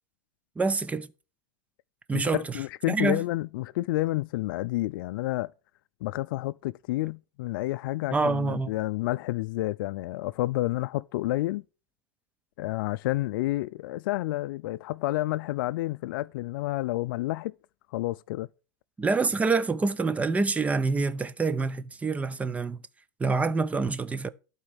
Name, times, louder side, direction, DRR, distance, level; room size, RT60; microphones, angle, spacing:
voice 1, 0.6-1.1 2.1-2.4 2.9-3.2 8.1-8.7 19.0-22.8 23.2-24.3, right 3 dB, 10° right, 0.6 m, -26 dB
voice 2, 2.1-5.5 6.0-11.6 12.6-17.5 17.9-18.5, left 17 dB, 75° left, 0.4 m, -30 dB
12.0 x 4.4 x 8.0 m
supercardioid pair, 135°, 12 cm